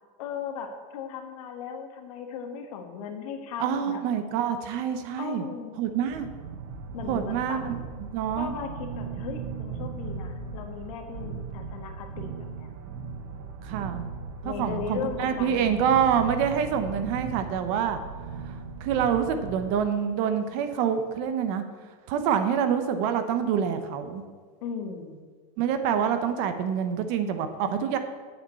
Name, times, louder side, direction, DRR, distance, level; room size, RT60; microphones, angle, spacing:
voice 1, 0.2-4.0 5.2-5.8 6.9-7.6 8.3-8.7 9.0-12.7 14.4-16.0 24.6-25.2, left 6 dB, 70° left, 4 dB, 1.6 m, -37 dB
voice 2, 3.6-5.4 5.8-6.3 7.1-7.7 8.1-8.5 13.6-14.0 14.4-18.0 18.5-21.6 22.1-24.2 25.6-28.0, right 8 dB, 45° right, 9 dB, 0.9 m, -26 dB
sound 1, 6.1-19.7, right 5 dB, 65° right, 1.1 m, -38 dB
7.9 x 6.5 x 8.1 m, 1.5 s
supercardioid pair, 170°, 19 cm